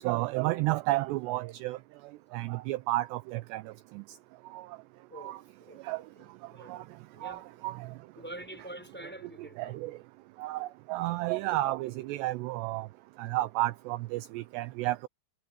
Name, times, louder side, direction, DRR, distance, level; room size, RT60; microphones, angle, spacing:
voice 1, 0.0-1.8 2.3-3.6 3.9-4.0 4.5-4.7 5.2-5.4 5.8-6.0 6.7-6.8 7.2-7.9 9.4-9.9 10.4-12.9 13.2-15.1, right 18 dB, 85° right, 2.5 m, -32 dB
voice 2, 5.1-6.2 6.5-7.7 8.2-9.8, right 1 dB, ahead, 5.8 m, -47 dB
omnidirectional pair, 5.4 m